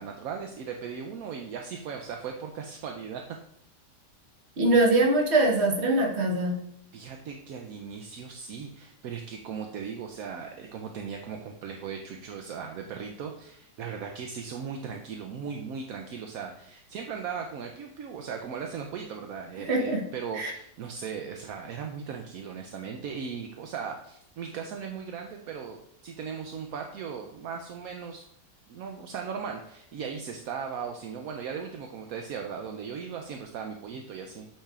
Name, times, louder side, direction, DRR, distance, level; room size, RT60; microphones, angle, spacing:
voice 1, 0.0-3.2 6.9-25.8 26.0-28.2 28.7-34.5, right 6 dB, 70° right, 3 dB, 0.9 m, -38 dB
voice 2, 4.6-6.6 19.6-20.0 20.3-20.5, right 2 dB, 40° right, 0 dB, 1.4 m, -23 dB
8.5 x 5.7 x 2.4 m, 0.75 s
omnidirectional pair, 1.8 m